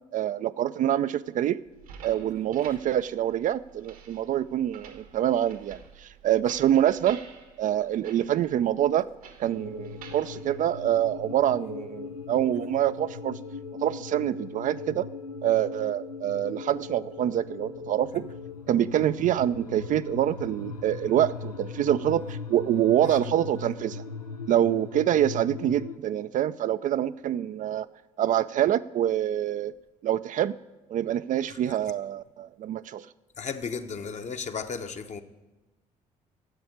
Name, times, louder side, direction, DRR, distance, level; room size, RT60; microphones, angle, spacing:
voice 1, 0.1-1.6 2.0-7.2 7.6-9.1 9.4-13.4 13.8-15.1 15.4-18.3 18.7-24.0 24.5-27.9 28.2-29.7 30.0-30.6 30.9-33.1, right 11 dB, 45° right, 0.4 m, -26 dB
sound 1, 1.7-11.4, right 7 dB, 75° right, 1.3 m, -50 dB
sound 2, 9.4-26.0, left 5 dB, 85° left, 0.4 m, -39 dB
voice 2, 33.4-35.2, left 5 dB, 40° left, 1.1 m, -34 dB
11.0 x 7.8 x 9.8 m
figure-of-eight pair, 45°, 19 cm